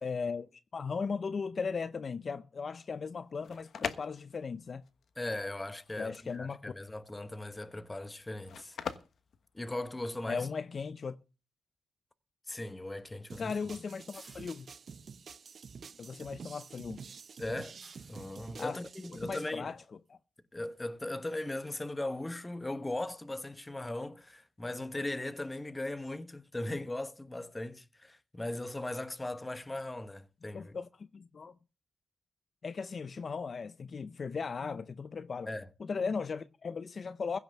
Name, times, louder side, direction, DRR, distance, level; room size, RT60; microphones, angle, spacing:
voice 1, 0.0-4.8 6.0-6.7 10.3-11.2 13.4-14.7 16.0-17.0 18.6-18.8 19.1-19.8 20.1-20.2 30.4-31.5 32.6-35.5 35.8-37.4, left 5 dB, 45° left, 0.6 m, -37 dB
sound 1, 3.2-10.3, left 7 dB, 65° left, 1.2 m, -43 dB
voice 2, 5.2-8.8 9.5-10.5 12.5-13.5 17.4-17.8 18.1-19.7 20.5-30.7 35.5-35.7, left 1 dB, 15° left, 1.0 m, -38 dB
sound 2, 13.3-19.5, right 5 dB, 50° right, 0.7 m, -49 dB
sound 3, 14.1-15.1 17.8-18.6 20.1-20.2 20.7-20.9 21.2-21.3 21.6-21.7, right 2 dB, 20° right, 4.0 m, -58 dB
16.0 x 6.0 x 7.3 m
cardioid pair, 100°, 0 cm